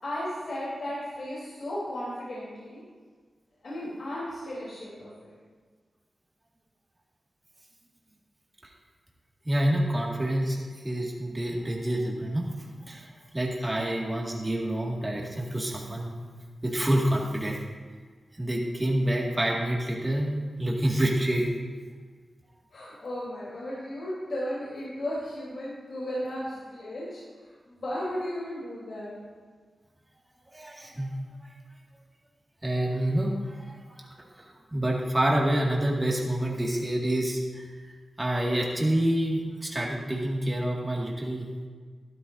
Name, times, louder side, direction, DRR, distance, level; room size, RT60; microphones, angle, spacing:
voice 1, 0.0-2.8 3.6-5.3 22.7-27.2 27.7-29.2, left 1 dB, 65° left, -9 dB, 3.6 m, -35 dB
voice 2, 9.4-16.1 16.6-17.6 18.3-21.4 30.5-31.2 31.4-31.5 32.6-37.7 38.2-41.5, right 1 dB, 20° right, -2 dB, 2.1 m, -28 dB
12.5 x 12.5 x 2.7 m, 1.5 s
wide cardioid pair, 75°, 0 cm